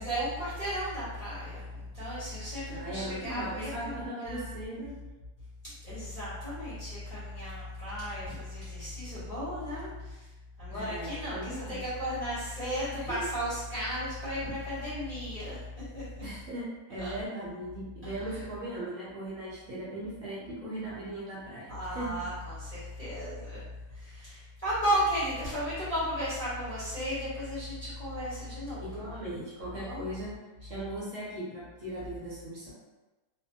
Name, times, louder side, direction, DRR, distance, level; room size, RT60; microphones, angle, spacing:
voice 1, 0.0-4.6 5.6-10.3 10.6-16.2 17.0-17.2 18.0-18.4 21.7-28.9 29.6-30.0, equal, 30° left, -12 dB, 0.8 m, -35 dB
voice 2, 2.7-4.9 10.7-11.8 13.0-13.2 16.2-16.6 16.9-22.1 28.8-30.3 30.6-32.7, right 1 dB, 60° right, -7 dB, 1.0 m, -38 dB
2.6 x 2.4 x 2.6 m, 1.1 s
omnidirectional pair, 1.7 m